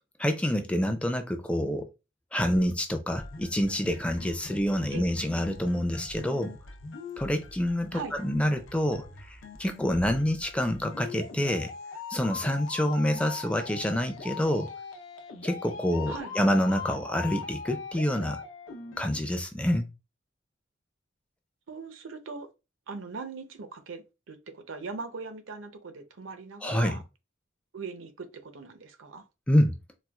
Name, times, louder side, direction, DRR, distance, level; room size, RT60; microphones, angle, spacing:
voice 1, 0.2-1.9 2.3-6.5 7.2-11.7 12.1-14.7 15.4-18.4 19.0-19.9 26.6-27.0 29.5-29.8, equal, 5° left, 0.4 m, -27 dB
sound 1, 3.2-19.2, left 5 dB, 80° left, 0.7 m, -42 dB
voice 2, 21.7-22.5 22.9-27.0 27.7-29.3, right 4 dB, 85° right, 0.6 m, -40 dB
4.2 x 2.3 x 2.3 m
head